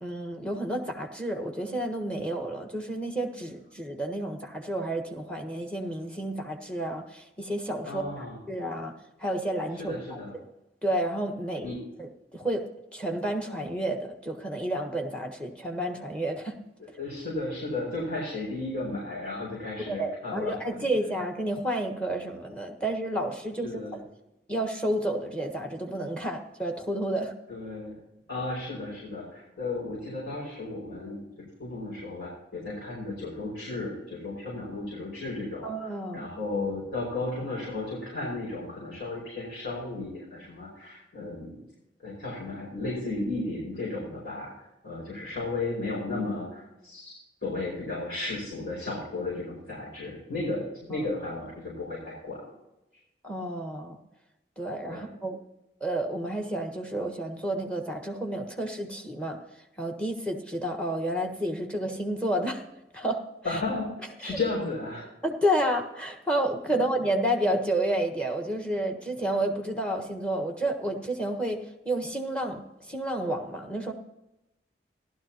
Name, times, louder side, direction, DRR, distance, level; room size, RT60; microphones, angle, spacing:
voice 1, 0.0-8.9 9.2-10.4 10.8-12.6 12.9-16.6 19.9-23.7 24.5-27.3 35.6-36.3 50.9-51.1 53.2-54.0 54.6-55.4 55.8-59.4 59.8-62.6 62.9-63.2 63.5-63.6 64.2-64.4 65.2-73.9, right 1 dB, 5° left, 4 dB, 1.4 m, -30 dB
voice 2, 7.9-8.4 9.8-10.4 11.6-11.8 17.0-20.8 23.6-24.0 27.5-28.0 28.3-31.2 31.6-35.7 36.1-41.6 42.0-52.5 54.9-55.1 63.4-63.9 64.2-65.1, left 2 dB, 85° left, -7 dB, 5.4 m, -34 dB
16.0 x 12.5 x 2.9 m, 0.91 s
head